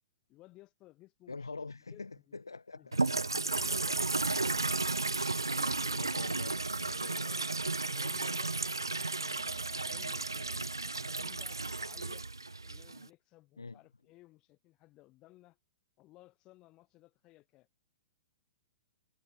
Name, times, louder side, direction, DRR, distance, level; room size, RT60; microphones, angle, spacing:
voice 1, 0.3-1.5 1.9-2.4 7.2-7.5 7.9-8.8 9.1-12.3 12.6-15.6 16.0-17.7, left 18 dB, 35° left, 8.0 m, -59 dB
voice 2, 1.3-3.0 3.6-3.9 5.9-7.4 13.6-13.8, left 3 dB, 80° left, 2.5 m, -45 dB
sound 1, 2.9-13.1, right 3 dB, 85° right, 0.6 m, -33 dB
figure-of-eight pair, 105°, 2 cm